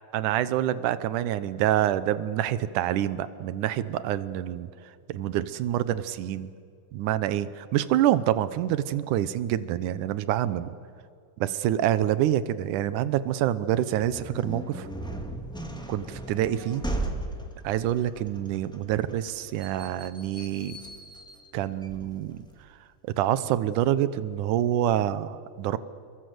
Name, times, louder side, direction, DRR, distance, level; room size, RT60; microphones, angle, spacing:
voice 1, 0.1-4.7 5.1-6.5 6.9-10.8 11.4-14.9 15.9-16.8 17.6-20.8 21.5-22.5 23.2-25.8, right 12 dB, 85° right, 15 dB, 2.4 m, -26 dB
sound 1, 13.9-22.6, right 2 dB, ahead, 1.7 m, -37 dB
28.0 x 23.0 x 7.9 m, 2.3 s
omnidirectional pair, 3.5 m